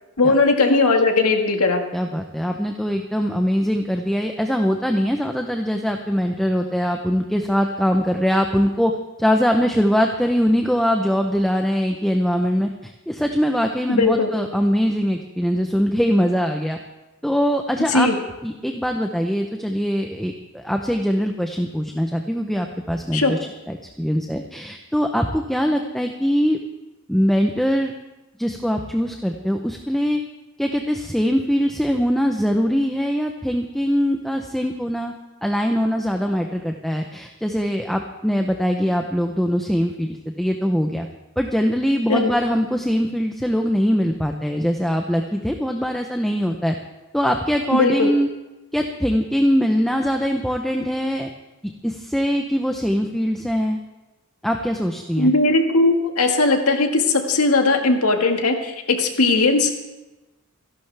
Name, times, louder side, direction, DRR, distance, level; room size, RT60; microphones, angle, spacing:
voice 1, 0.2-1.8 13.9-14.3 17.9-18.2 23.1-23.3 42.1-42.3 47.7-48.1 55.2-59.8, left 3 dB, 85° left, 4 dB, 1.8 m, -18 dB
voice 2, 1.9-8.9 9.2-16.8 17.2-18.1 18.4-23.4 23.7-26.6 27.1-27.9 28.4-30.2 30.6-35.1 35.4-41.1 41.4-46.7 47.1-48.3 48.7-51.3 51.8-53.8 54.4-55.3, equal, ahead, 3 dB, 0.7 m, -22 dB
28.0 x 11.5 x 3.4 m, 1.1 s
head